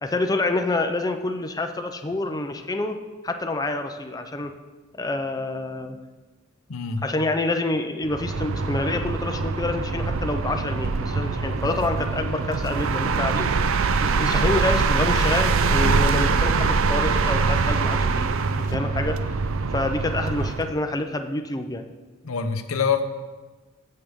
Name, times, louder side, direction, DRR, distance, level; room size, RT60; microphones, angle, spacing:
voice 1, 0.0-3.0 3.2-4.5 4.9-6.0 7.0-13.5 14.0-19.2 19.7-21.9, left 2 dB, 20° left, 6 dB, 0.5 m, -27 dB
voice 2, 6.7-7.0 22.2-23.0, left 6 dB, 85° left, 8 dB, 0.8 m, -25 dB
sound 1, 8.0-20.7, right 4 dB, 70° right, 0.5 m, -23 dB
16.0 x 6.5 x 3.6 m, 1.3 s
head